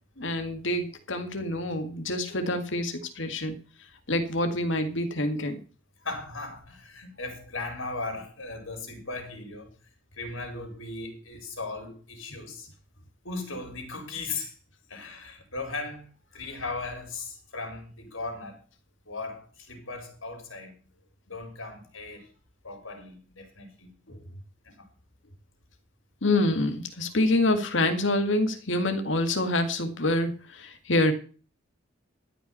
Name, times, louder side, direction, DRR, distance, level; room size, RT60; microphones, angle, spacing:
voice 1, 0.2-3.6 4.1-5.6 24.1-24.2 26.2-31.1, left 1 dB, 65° left, 7 dB, 2.0 m, -26 dB
voice 2, 6.0-9.7 10.1-12.7 13.2-14.5 14.9-16.1 16.3-18.6 19.1-20.8 21.3-22.3 22.6-23.9 24.6-24.9, left 3 dB, 85° left, 5 dB, 4.3 m, -37 dB
13.0 x 5.8 x 8.0 m, 0.38 s
head